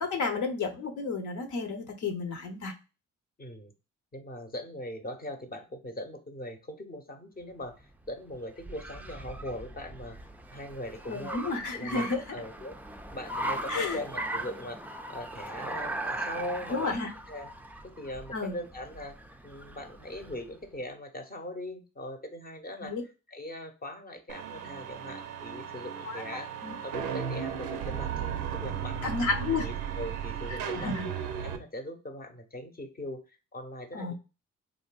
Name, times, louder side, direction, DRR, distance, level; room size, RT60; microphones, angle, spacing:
voice 1, 0.0-2.7 11.1-12.2 13.7-14.0 16.7-17.1 18.3-18.6 22.8-23.0 26.1-26.7 29.0-29.7 30.8-31.1 33.9-34.1, left 4 dB, 65° left, 4 dB, 0.8 m, -31 dB
voice 2, 3.4-3.7 4.1-10.2 10.5-11.4 11.7-12.7 13.1-14.8 15.1-17.0 17.3-17.5 17.8-19.2 19.4-26.5 26.8-29.1 29.6-30.9 31.4-34.1, left 1 dB, 30° left, 6 dB, 0.8 m, -40 dB
Car, 7.6-20.5, right 1 dB, 5° right, 0.4 m, -39 dB
sound 1, 24.3-31.6, right 8 dB, 90° right, 0.5 m, -35 dB
3.4 x 2.5 x 2.3 m, 0.30 s
supercardioid pair, 60°, 32 cm